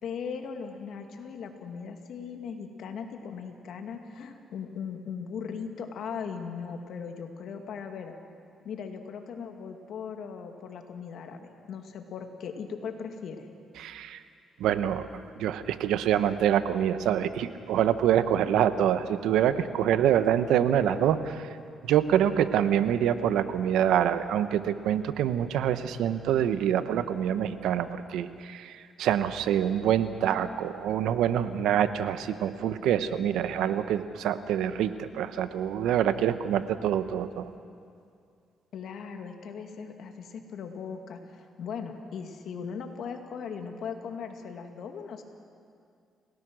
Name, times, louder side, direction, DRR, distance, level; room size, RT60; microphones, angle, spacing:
voice 1, 0.0-8.2 8.6-13.5 38.7-45.2, left 6 dB, 70° left, 4 dB, 2.2 m, -38 dB
voice 2, 13.8-14.2 14.6-15.1 15.4-21.5 21.8-28.7 29.0-37.5, right 10 dB, 85° right, 11 dB, 1.0 m, -26 dB
30.0 x 17.5 x 6.3 m, 2.3 s
cardioid pair, 90°, 0 cm